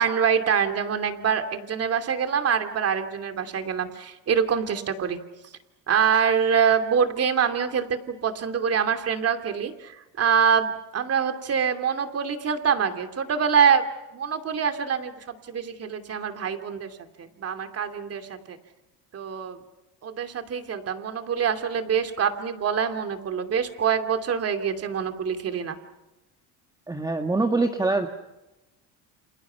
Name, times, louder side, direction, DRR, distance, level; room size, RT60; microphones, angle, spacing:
voice 1, 0.0-5.2 5.9-13.8 14.1-16.9 17.2-18.6 19.1-19.6 20.0-25.8, right 7 dB, 40° right, 7 dB, 2.8 m, -25 dB
voice 2, 26.9-28.1, right 3 dB, 10° right, 5 dB, 1.6 m, -24 dB
29.5 x 27.5 x 5.8 m, 1.0 s
cardioid pair, 120°, 36 cm